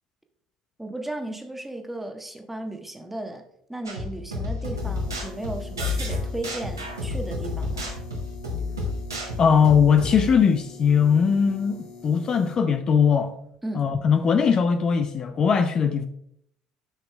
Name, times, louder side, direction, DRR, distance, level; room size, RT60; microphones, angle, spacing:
voice 1, 0.8-3.4 3.7-7.9 13.6-13.9, right 1 dB, 10° right, 1.2 m, -35 dB
sound 1, 3.9-10.3, left 2 dB, 90° right, 1.4 m, -30 dB
sound 2, 4.7-12.6, left 4 dB, 60° left, 1.8 m, -45 dB
voice 2, 9.4-13.3 13.7-16.1, left 6 dB, 40° left, 0.6 m, -20 dB
11.0 x 5.9 x 2.3 m
figure-of-eight pair, 60°, 2 cm